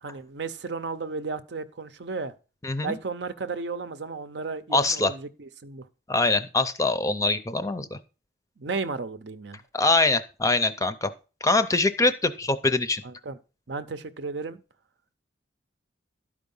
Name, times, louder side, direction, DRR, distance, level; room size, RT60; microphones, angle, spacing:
voice 1, 0.0-2.3 2.8-5.9 8.6-9.6 13.0-13.4 13.7-14.6, right 4 dB, 65° right, 0.7 m, -34 dB
voice 2, 2.6-3.0 4.7-5.1 6.1-8.0 9.7-11.1 11.4-13.0, left 3 dB, 15° left, 0.5 m, -23 dB
12.0 x 4.9 x 5.4 m
head